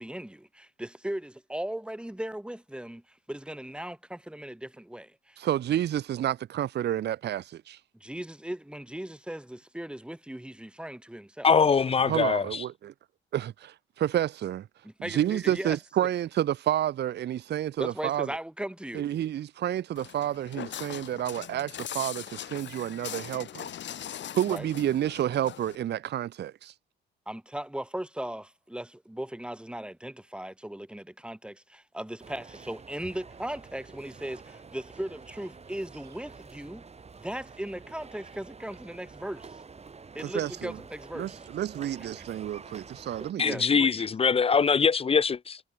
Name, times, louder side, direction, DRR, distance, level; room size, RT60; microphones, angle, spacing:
voice 1, 0.0-5.4 8.0-11.5 14.8-15.8 17.8-19.1 24.5-24.7 27.3-36.9 37.2-39.6 40.1-41.5 43.3-44.0, right 1 dB, 5° right, 5.7 m, -38 dB
voice 2, 5.4-7.8 12.1-12.9 13.3-14.7 15.0-18.3 18.9-23.7 24.3-26.7 40.2-40.7 41.2-43.6, right 11 dB, 60° right, 0.7 m, -30 dB
voice 3, 11.4-12.6 43.4-45.6, left 5 dB, 30° left, 0.6 m, -23 dB
Walk footsteps, 20.0-25.8, left 10 dB, 65° left, 2.9 m, -40 dB
sound 1, 32.2-43.3, right 5 dB, 30° right, 4.3 m, -48 dB
cardioid pair, 90°, 20 cm